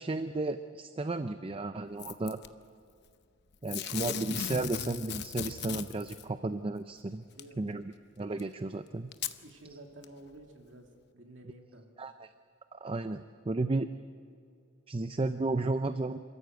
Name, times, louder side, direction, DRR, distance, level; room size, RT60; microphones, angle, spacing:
voice 1, 0.0-2.4 3.6-7.2 7.6-9.1 12.0-12.3 12.7-13.9 14.9-16.2, right 2 dB, 25° right, 10 dB, 0.5 m, -33 dB
Packing tape duct tape / Tearing, 2.0-2.5 3.7-6.2 7.4-7.5 8.4-8.5 9.1-9.4 10.0-10.1, left 8 dB, 55° left, 0.8 m, -37 dB
voice 2, 7.2-7.6 9.4-10.9 11.1-12.0, right 1 dB, 65° right, 2 dB, 2.5 m, -51 dB
26.5 x 14.0 x 8.0 m, 2.3 s
head